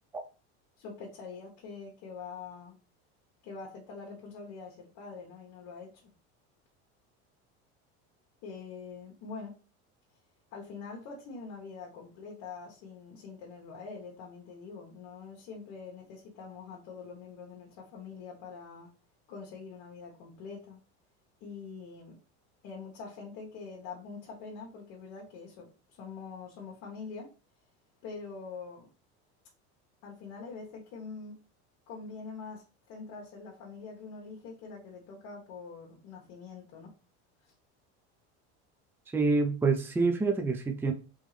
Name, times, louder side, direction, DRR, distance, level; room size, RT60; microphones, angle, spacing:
voice 1, 0.8-2.7 3.4-6.1 8.4-9.6 10.5-18.9 19.3-20.8 21.4-22.2 22.6-27.3 28.0-28.9 30.0-31.4 31.9-36.9, left 5 dB, 55° left, -2 dB, 1.2 m, -44 dB
voice 2, 39.1-40.9, right 4 dB, 5° right, 4 dB, 0.5 m, -26 dB
3.5 x 3.2 x 3.2 m, 0.34 s
supercardioid pair, 120°, 34 cm